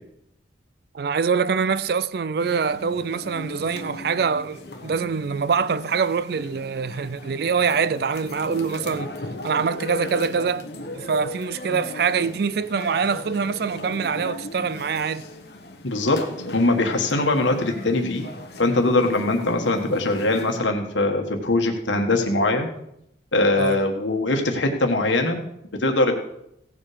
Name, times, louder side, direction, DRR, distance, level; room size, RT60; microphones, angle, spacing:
voice 1, 0.9-9.1 9.4-10.7 10.9-15.2 23.6-23.8, right 5 dB, 55° right, 0.4 m, -24 dB
sound 1, 2.4-20.6, left 1 dB, 55° left, 1.2 m, -38 dB
voice 2, 15.8-16.2 16.5-18.3 18.6-22.7 23.3-25.4 25.8-26.1, left 2 dB, 80° left, 1.5 m, -21 dB
16.0 x 7.4 x 5.0 m
head